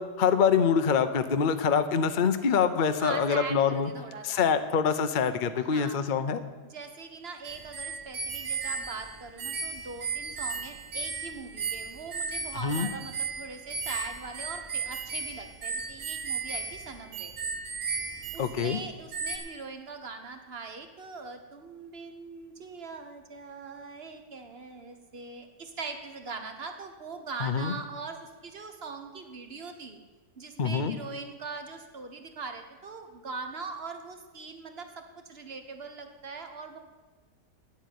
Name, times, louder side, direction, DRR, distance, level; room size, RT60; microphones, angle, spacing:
voice 1, 0.0-3.9 4.2-6.4 12.6-12.9 18.4-18.8 27.4-27.8 30.6-31.0, left 6 dB, 50° left, 9 dB, 0.5 m, -25 dB
voice 2, 3.0-4.4 5.6-6.0 6.6-17.3 18.3-30.0 30.4-36.8, right 4 dB, 40° right, 6 dB, 1.3 m, -41 dB
sound 1, 7.4-18.8 19.1-19.4, right 4 dB, 65° right, 2.0 m, -35 dB
9.5 x 8.2 x 9.3 m, 1.3 s
omnidirectional pair, 1.8 m